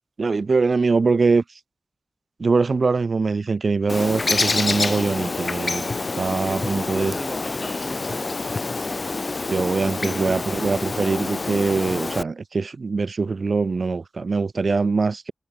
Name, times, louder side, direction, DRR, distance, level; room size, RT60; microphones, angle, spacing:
voice 1, 0.2-1.6 2.4-5.8 6.1-7.1 9.5-15.3, right 4 dB, 70° right, 0.6 m, -22 dB
Bird, 3.9-12.2, left 3 dB, 55° left, 0.6 m, -27 dB
voice 2, 6.3-8.2 9.6-10.4, right 1 dB, 10° right, 2.4 m, -38 dB
wide cardioid pair, 70°, 0 cm